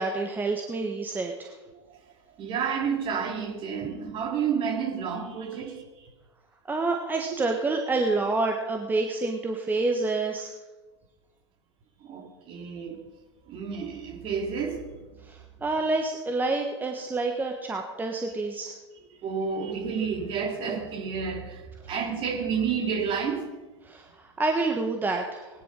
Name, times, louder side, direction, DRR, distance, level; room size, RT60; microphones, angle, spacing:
voice 1, 0.0-1.5 6.7-10.5 15.3-18.7 23.9-25.5, right 3 dB, 10° right, 3 dB, 1.4 m, -28 dB
voice 2, 2.4-6.1 12.0-13.0 13.5-15.1 19.2-23.5, right 6 dB, 35° right, 2 dB, 3.1 m, -30 dB
19.0 x 10.5 x 5.3 m, 1.2 s
figure-of-eight pair, 95°, 15 cm